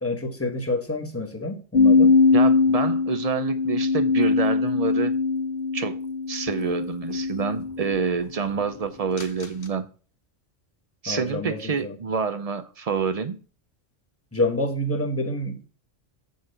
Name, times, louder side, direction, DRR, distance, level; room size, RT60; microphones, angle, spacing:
voice 1, 0.0-2.2 11.1-12.0 14.3-15.7, left 1 dB, 10° left, 1.0 m, -28 dB
sound 1, 1.7-8.0 9.2-9.4, left 4 dB, 50° left, 1.3 m, -21 dB
voice 2, 2.3-5.1 5.7-6.0 6.3-9.9 11.0-13.4, right 5 dB, 45° right, 0.5 m, -27 dB
7.4 x 4.0 x 6.4 m
omnidirectional pair, 1.3 m